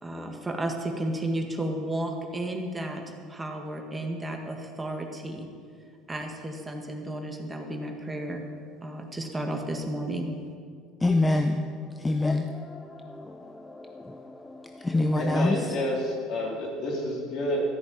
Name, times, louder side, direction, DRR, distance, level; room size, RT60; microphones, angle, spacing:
voice 1, 0.0-5.5 6.1-8.4 8.8-10.3, right 1 dB, 15° right, 2 dB, 1.9 m, -33 dB
voice 2, 11.0-15.8, left 2 dB, 15° left, 6 dB, 0.8 m, -27 dB
voice 3, 15.2-17.6, left 1 dB, 60° left, -2 dB, 4.0 m, -30 dB
14.0 x 6.3 x 8.8 m, 2.2 s
supercardioid pair, 85°, 0 cm